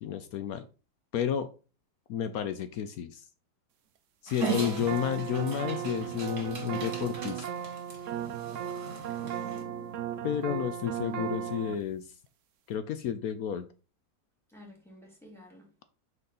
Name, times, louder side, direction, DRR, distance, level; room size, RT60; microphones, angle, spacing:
voice 1, 0.0-0.7 1.1-1.5 2.1-3.2 4.2-7.4 10.2-12.0 12.7-13.7, left 9 dB, 70° left, 0.8 m, -31 dB
Dog, 4.3-9.6, right 6 dB, 55° right, 2.5 m, -39 dB
sound 1, 4.4-11.8, right 9 dB, 70° right, 0.7 m, -36 dB
voice 2, 9.2-10.0 14.5-15.6, equal, ahead, 2.2 m, -51 dB
6.3 x 4.6 x 4.0 m
omnidirectional pair, 2.0 m